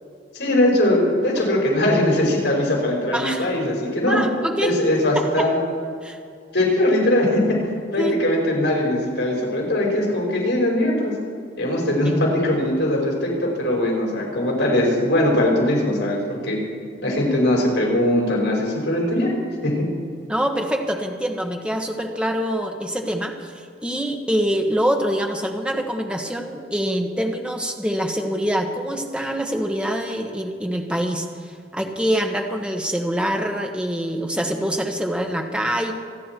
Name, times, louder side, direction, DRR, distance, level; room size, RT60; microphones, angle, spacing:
voice 1, 0.3-4.2 4.6-5.6 6.5-7.6 7.9-11.1 11.6-16.6 17.0-19.9, left 1 dB, 75° left, -2 dB, 5.1 m, -20 dB
voice 2, 3.1-3.5 4.1-4.7 5.1-5.5 6.0-6.2 8.0-8.2 20.3-23.5 23.8-35.9, equal, 5° right, 3 dB, 1.3 m, -25 dB
26.5 x 9.8 x 4.6 m, 2.3 s
head